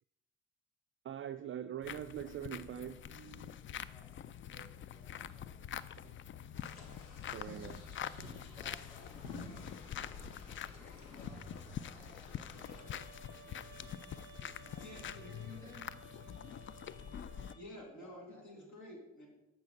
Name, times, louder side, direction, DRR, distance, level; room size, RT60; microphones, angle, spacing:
voice 1, 1.0-3.5 6.0-6.1 7.3-7.8, right 10 dB, 35° right, 9 dB, 0.4 m, -43 dB
sound 1, 1.8-17.5, left 9 dB, 35° left, 0.4 m, -46 dB
voice 2, 3.9-5.8 8.5-10.2 10.7-13.8 14.2-15.8 17.9-18.7, right 1 dB, 5° left, 0 dB, 3.2 m, -62 dB
sound 2, 6.5-12.9, left 2 dB, 85° left, 1.2 m, -52 dB
Bowed string instrument, 12.6-17.6, right 5 dB, 70° left, 2.8 m, -57 dB
voice 3, 14.4-15.8 17.5-19.3, left 1 dB, 55° left, 0 dB, 2.5 m, -51 dB
8.2 x 4.7 x 5.3 m, 0.98 s
hypercardioid pair, 50°, 36 cm